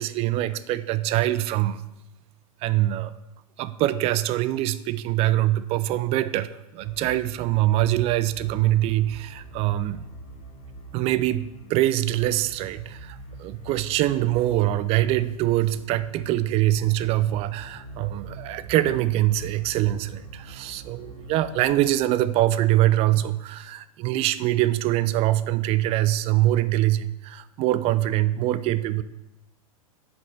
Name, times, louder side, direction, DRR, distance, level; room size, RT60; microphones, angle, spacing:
voice 1, 0.0-1.8 2.6-3.2 3.6-10.1 10.9-29.0, right 14 dB, 35° right, 15 dB, 0.4 m, -24 dB
sound 1, 6.8-22.0, right 1 dB, 30° left, 1.5 m, -43 dB
6.0 x 5.2 x 6.8 m, 0.93 s
hypercardioid pair, 100°, 19 cm